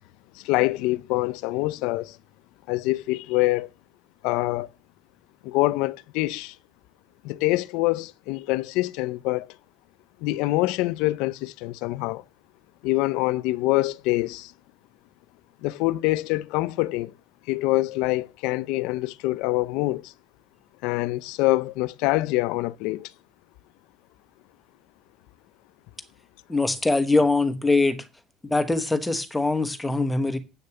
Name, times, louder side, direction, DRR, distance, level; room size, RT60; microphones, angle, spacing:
voice 1, 0.4-2.2 2.7-3.7 4.2-4.7 5.4-6.6 7.2-9.5 10.2-12.2 12.8-14.5 15.6-17.1 17.5-20.1 20.8-23.1, left 19 dB, 65° left, 0.6 m, -25 dB
voice 2, 26.5-28.0 28.4-30.4, left 3 dB, 5° left, 1.1 m, -22 dB
8.0 x 6.6 x 8.2 m
cardioid pair, 165°, 0 cm